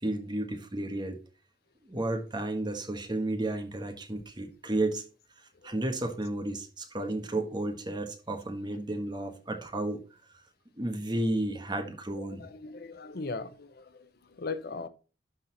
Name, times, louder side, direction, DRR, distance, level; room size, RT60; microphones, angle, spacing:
voice 1, 0.0-1.2 1.8-5.0 5.6-10.0 10.8-12.4, right 1 dB, 25° right, 1.5 m, -32 dB
voice 2, 12.1-14.9, left 3 dB, 60° left, 0.7 m, -39 dB
12.0 x 4.2 x 4.1 m
head